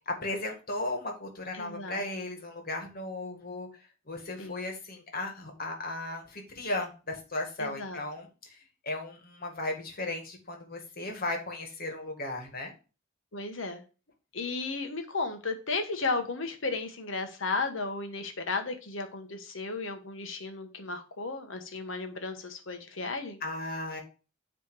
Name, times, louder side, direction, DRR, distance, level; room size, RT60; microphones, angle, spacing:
voice 1, 0.1-3.7 4.1-8.6 8.8-12.7 23.4-24.0, left 2 dB, 50° left, 3 dB, 1.9 m, -36 dB
voice 2, 1.5-2.0 4.4-4.7 7.6-8.0 13.3-13.8 14.3-23.4, left 3 dB, 70° left, 6 dB, 1.2 m, -34 dB
9.6 x 3.4 x 4.7 m, 0.34 s
head